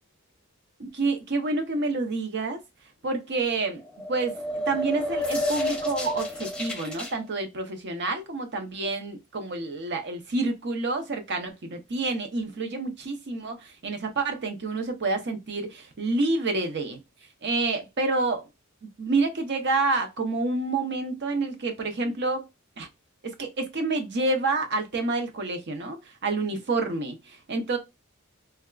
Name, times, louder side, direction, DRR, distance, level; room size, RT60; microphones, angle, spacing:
voice 1, 0.8-2.6 3.0-3.8 4.1-4.4 4.7-17.0 17.4-18.4 19.0-22.5 22.8-22.9 23.2-27.8, right 3 dB, 55° right, 0.7 m, -28 dB
sound 1, 3.8-7.1, left 1 dB, 5° left, 0.7 m, -30 dB
3.3 x 2.3 x 2.3 m
head